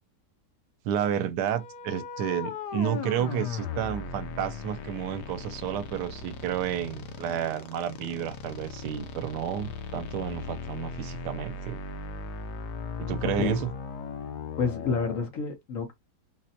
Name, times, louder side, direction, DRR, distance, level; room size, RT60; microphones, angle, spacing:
voice 1, 0.8-11.8 13.0-13.7, right 9 dB, 85° right, 1.2 m, -31 dB
sound 1, 1.4-15.3, left 5 dB, 80° left, 1.2 m, -38 dB
voice 2, 14.6-15.9, left 5 dB, 60° left, 1.1 m, -29 dB
4.0 x 2.1 x 2.7 m
omnidirectional pair, 1.8 m